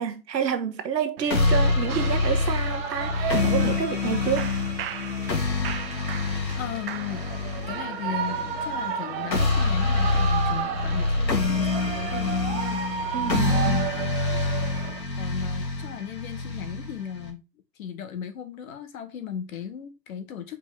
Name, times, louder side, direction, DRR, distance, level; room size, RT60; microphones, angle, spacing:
voice 1, 0.0-4.5 13.1-13.8, right 8 dB, 80° right, 1.4 m, -29 dB
Shout / Cheering, 1.2-15.0, right 9 dB, 35° right, 0.7 m, -34 dB
sound 1, 1.3-17.3, left 3 dB, 85° left, 2.7 m, -26 dB
voice 2, 6.2-7.3 7.7-14.3 15.2-17.4 17.8-20.6, left 8 dB, 55° left, 1.4 m, -36 dB
5.3 x 5.1 x 3.8 m
hypercardioid pair, 135°, 50 cm